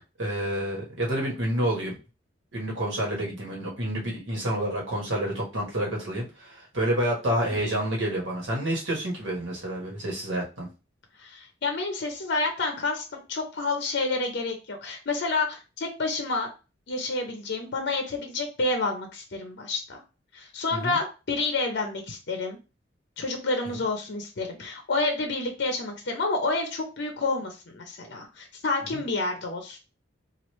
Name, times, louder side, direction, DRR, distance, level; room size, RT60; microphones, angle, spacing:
voice 1, 0.2-2.0 2.5-10.7 20.7-21.0 23.7-23.8 28.9-29.0, right 1 dB, 70° right, -2 dB, 1.3 m, -29 dB
voice 2, 11.2-16.5 16.9-20.0 20.3-22.6 23.2-29.8, left 3 dB, 60° left, 4 dB, 0.6 m, -29 dB
3.1 x 2.4 x 3.1 m, 0.31 s
head